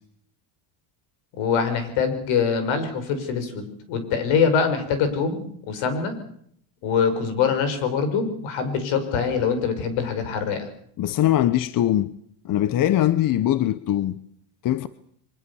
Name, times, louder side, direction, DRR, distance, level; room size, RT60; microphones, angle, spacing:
voice 1, 1.4-6.1 6.8-10.7, left 6 dB, 75° left, 5.7 m, -24 dB
voice 2, 11.0-12.1 12.4-14.1 14.6-14.9, left 12 dB, 45° left, 0.9 m, -21 dB
24.0 x 22.0 x 7.1 m
cardioid pair, 130°, 47 cm